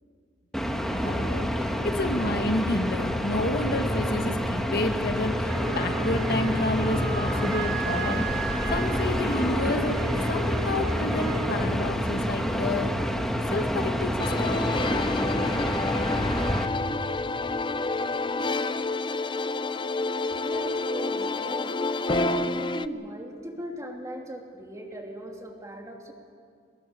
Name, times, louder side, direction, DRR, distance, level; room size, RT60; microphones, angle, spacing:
sound 1, 0.5-16.7, equal, ahead, 1.4 m, -28 dB
voice 1, 0.9-10.0 10.3-12.9 13.5-14.6, left 2 dB, 55° left, 5 dB, 1.6 m, -30 dB
Wind instrument woodwind instrument, 5.4-11.7, right 3 dB, 70° right, 4.5 m, -35 dB
sound 2, 14.2-22.9, left 3 dB, 25° left, 0.5 m, -29 dB
voice 2, 20.4-21.7 22.0-26.1, right 1 dB, 15° right, 1 dB, 2.9 m, -38 dB
24.0 x 21.0 x 8.2 m, 2.2 s
head